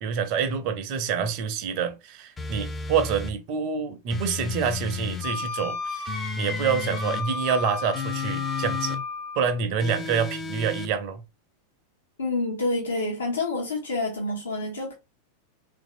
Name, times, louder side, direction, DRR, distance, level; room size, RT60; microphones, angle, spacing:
voice 1, 0.0-9.0 9.4-11.2, right 6 dB, 40° right, 0.5 m, -27 dB
sound 1, 2.4-3.4 4.1-5.3 6.0-7.3 7.9-9.0 9.8-10.9, left 4 dB, 15° left, 0.5 m, -33 dB
Wind instrument woodwind instrument, 5.2-9.6, left 4 dB, 30° left, 0.8 m, -33 dB
voice 2, 12.2-14.9, left 2 dB, 70° left, 0.9 m, -28 dB
3.1 x 2.6 x 2.5 m
figure-of-eight pair, 90°, 0 cm